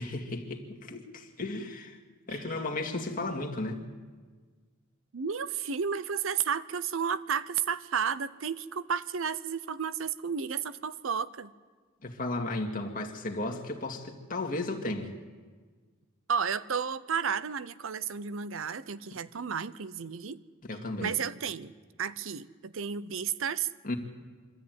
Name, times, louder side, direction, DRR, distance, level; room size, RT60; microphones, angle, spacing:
voice 1, 0.0-2.0 2.3-3.8 12.0-15.1 20.6-21.1 23.8-23.9, left 2 dB, 40° left, 1 dB, 2.2 m, -34 dB
voice 2, 5.1-11.5 16.3-20.4 21.0-23.7, right 7 dB, 70° right, 16 dB, 0.7 m, -32 dB
25.0 x 13.5 x 9.3 m, 1.5 s
head